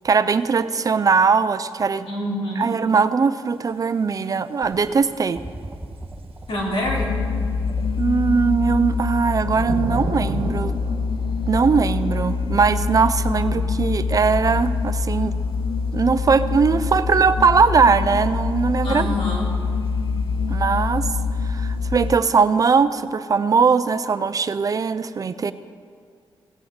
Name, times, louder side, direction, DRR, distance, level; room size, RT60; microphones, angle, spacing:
voice 1, 0.0-2.1 2.6-5.4 8.0-10.7 11.5-15.3 15.9-19.2 20.5-21.0 21.4-25.5, right 5 dB, 40° right, 13 dB, 0.4 m, -20 dB
voice 2, 2.1-2.7 6.5-7.2 13.4-13.6 18.8-19.6, left 1 dB, 80° left, -3 dB, 3.1 m, -26 dB
sound 1, 3.5-4.8 5.2-5.3 6.0-7.3 7.7-22.1, right 5 dB, 80° right, 1.1 m, -39 dB
sound 2, 4.6-11.8 12.9-13.0, right 1 dB, 15° right, 1.2 m, -41 dB
sound 3, 6.8-22.2, left 4 dB, 50° left, 0.5 m, -25 dB
17.0 x 6.1 x 8.0 m, 2.2 s
wide cardioid pair, 130°, 9 cm